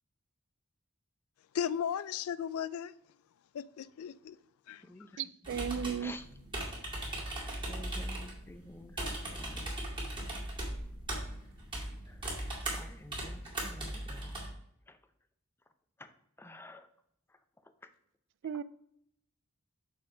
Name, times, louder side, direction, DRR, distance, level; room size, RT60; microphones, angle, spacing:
voice 1, 1.5-2.9 3.5-4.4 4.7-4.8, left 8 dB, 80° left, 18 dB, 0.3 m, -35 dB
voice 2, 5.2-6.1 18.4-18.6, right 8 dB, 60° right, 18 dB, 0.3 m, -35 dB
sound 1, 5.4-14.5, right 1 dB, 25° right, 2.2 m, -39 dB
voice 3, 7.7-8.9 9.3-9.7 12.7-14.4 14.9-15.0 16.0-16.1 16.4-16.9, left 1 dB, 10° left, 10 dB, 0.5 m, -50 dB
6.6 x 4.3 x 4.9 m, 0.73 s
head